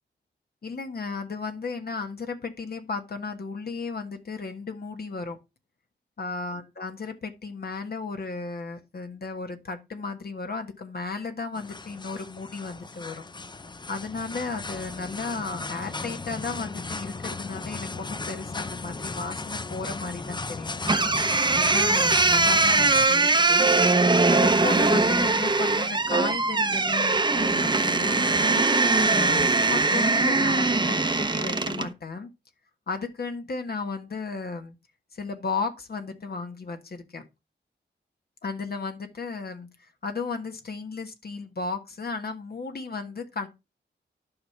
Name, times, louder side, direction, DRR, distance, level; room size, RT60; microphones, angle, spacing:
voice 1, 0.6-5.4 6.2-13.3 13.9-20.8 21.5-23.7 24.3-28.6 29.2-32.3 32.9-34.7 35.1-37.2 38.4-43.5, left 4 dB, 50° left, 1.5 m, -34 dB
sound 1, 11.5-23.1, left 3 dB, 25° left, 0.6 m, -36 dB
sound 2, 20.9-31.9, right 3 dB, 20° right, 0.9 m, -21 dB
11.5 x 5.8 x 3.3 m
wide cardioid pair, 130°, 20 cm